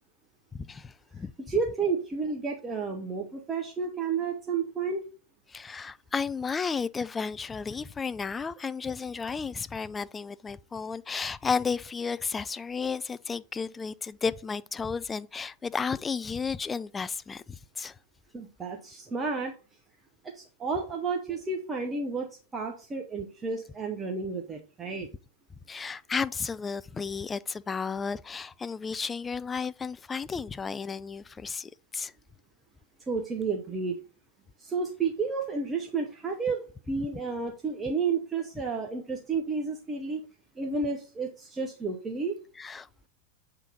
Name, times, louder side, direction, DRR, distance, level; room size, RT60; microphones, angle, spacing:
voice 1, 0.5-1.3 5.5-18.0 25.7-32.1 42.6-43.1, left 5 dB, 15° left, 0.3 m, -33 dB
voice 2, 1.4-5.0 18.3-19.6 20.2-25.1 33.1-34.0 34.6-40.2 40.6-42.4, right 4 dB, 15° right, 0.9 m, -31 dB
7.3 x 3.9 x 4.1 m
figure-of-eight pair, 90°, 0 cm